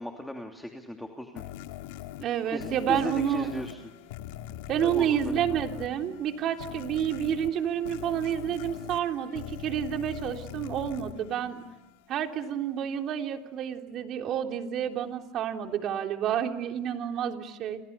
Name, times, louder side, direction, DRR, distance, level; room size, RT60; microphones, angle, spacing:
voice 1, 0.0-1.4 2.5-3.8 4.8-5.6, left 1 dB, 5° left, 3 dB, 2.9 m, -36 dB
sound 1, 1.4-12.1, left 12 dB, 80° left, 2.1 m, -42 dB
voice 2, 2.2-3.5 4.7-11.6 12.1-17.8, right 9 dB, 50° right, 4 dB, 3.4 m, -29 dB
30.0 x 28.5 x 6.8 m, 0.99 s
supercardioid pair, 100°, 0 cm